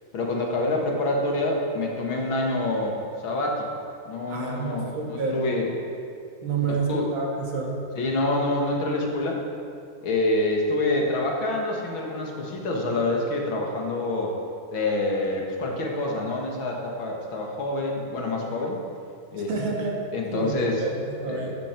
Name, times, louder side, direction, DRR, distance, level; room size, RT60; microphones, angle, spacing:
voice 1, 0.1-3.7 4.1-5.7 6.6-7.1 8.0-9.4 10.0-14.4 14.7-18.8 19.3-19.5 19.8-20.8 21.2-21.5, left 2 dB, 45° left, -1 dB, 2.2 m, -27 dB
voice 2, 4.3-5.4 6.4-7.8 19.5-20.0 20.3-21.6, right 4 dB, 45° right, -1 dB, 2.3 m, -29 dB
13.5 x 13.0 x 4.6 m, 2.5 s
omnidirectional pair, 3.5 m